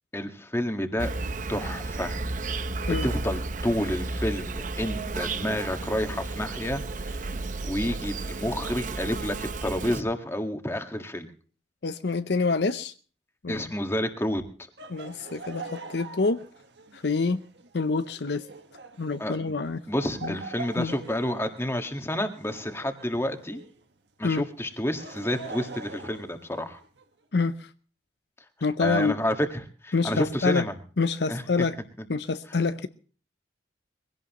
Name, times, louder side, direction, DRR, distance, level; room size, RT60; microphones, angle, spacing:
voice 1, 0.1-1.1 1.5-2.2 3.0-7.2 7.6-11.3 13.5-14.4 19.2-19.5 19.9-23.6 24.2-26.8 28.8-30.7 31.3-31.4, left 1 dB, 15° left, 1.7 m, -29 dB
Insect, 1.0-10.0, right 3 dB, 45° right, 0.8 m, -33 dB
voice 2, 11.8-12.9 13.4-13.6 14.9-16.4 16.9-17.4 17.7-18.4 19.0-19.8 20.2-20.4 20.8-20.9 24.2-24.4 27.3-27.7 28.6-29.2 29.9-30.6 31.0-31.8 32.1-32.9, left 4 dB, 65° left, 0.7 m, -26 dB
Laughter, 14.8-23.8 24.7-27.0, right 3 dB, 75° right, 1.6 m, -44 dB
22.5 x 17.0 x 3.0 m
head